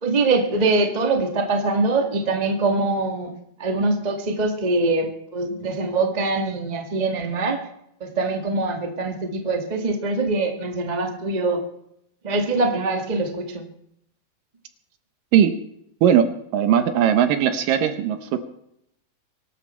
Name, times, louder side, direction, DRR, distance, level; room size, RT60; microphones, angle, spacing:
voice 1, 0.0-3.3 3.6-7.6 8.0-11.6 12.2-13.6, right 3 dB, 50° right, 3 dB, 0.4 m, -23 dB
voice 2, 16.0-18.4, right 9 dB, 70° right, 9 dB, 2.3 m, -19 dB
24.0 x 12.5 x 4.5 m, 0.76 s
omnidirectional pair, 4.6 m